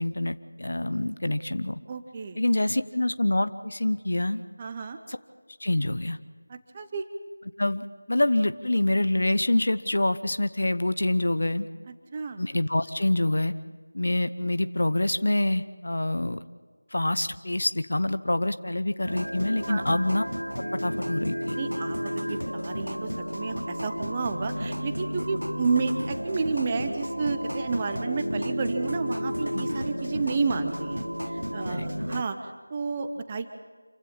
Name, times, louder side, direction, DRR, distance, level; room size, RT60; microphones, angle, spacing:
voice 1, 0.0-1.8 2.4-4.4 5.1-5.2 5.6-6.2 7.6-11.7 12.4-13.5 13.9-16.4 16.9-20.2 20.8-21.5 29.5-29.7 31.7-31.9, left 1 dB, 50° left, 12 dB, 0.9 m, -26 dB
voice 2, 1.9-2.4 4.6-5.0 6.5-7.0 11.9-12.4 19.7-20.0 21.6-31.0 31.5-32.4 32.7-33.5, right 4 dB, 15° right, 7 dB, 0.9 m, -31 dB
sound 1, 19.1-32.2, equal, 85° right, 1.3 m, -32 dB
27.0 x 16.0 x 7.2 m, 1.4 s
figure-of-eight pair, 170°, 0 cm